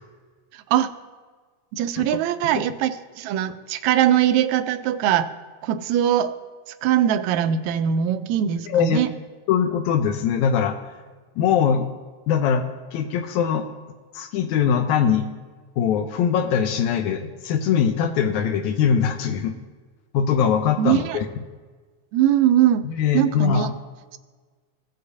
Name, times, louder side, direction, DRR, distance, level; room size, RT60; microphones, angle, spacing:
voice 1, 0.5-0.9 1.7-5.3 5.6-6.4 6.7-9.1 20.8-21.2 22.1-22.8 23.1-23.7, right 10 dB, 80° right, 10 dB, 1.8 m, -21 dB
voice 2, 8.7-9.1 9.5-10.8 11.4-11.9 12.3-13.7 14.1-15.3 15.8-19.5 20.1-21.3 22.8-23.7, left 7 dB, 85° left, 5 dB, 2.0 m, -22 dB
17.0 x 6.6 x 2.7 m, 1.4 s
omnidirectional pair, 3.3 m